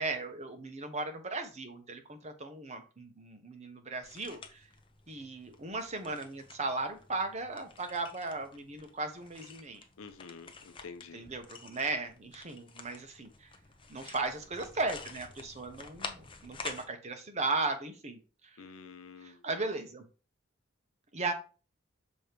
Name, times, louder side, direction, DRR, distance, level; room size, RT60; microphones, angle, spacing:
voice 1, 0.0-4.7 5.1-9.8 11.1-13.5 13.9-18.6 19.2-20.1 21.1-21.3, right 3 dB, 35° right, 1.0 m, -36 dB
sound 1, 4.0-16.9, left 4 dB, 25° left, 0.7 m, -49 dB
voice 2, 10.0-11.2 18.6-19.4, left 5 dB, 80° left, 0.7 m, -48 dB
6.2 x 3.0 x 5.1 m
head